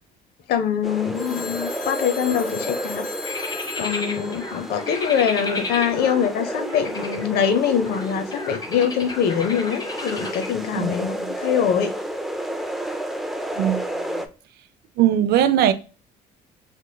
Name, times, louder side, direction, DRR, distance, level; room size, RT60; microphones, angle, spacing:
voice 1, 0.5-3.0 3.8-12.0, left 8 dB, 70° left, 0.6 m, -23 dB
sound 1, 0.8-14.3, equal, ahead, 0.4 m, -31 dB
Telephone, 1.1-5.4, left 5 dB, 45° left, 1.4 m, -37 dB
sound 2, 3.2-10.8, left 2 dB, 25° left, 1.0 m, -33 dB
voice 2, 15.0-15.7, right 11 dB, 70° right, 0.4 m, -19 dB
3.5 x 2.9 x 2.2 m
cardioid pair, 110°, 17 cm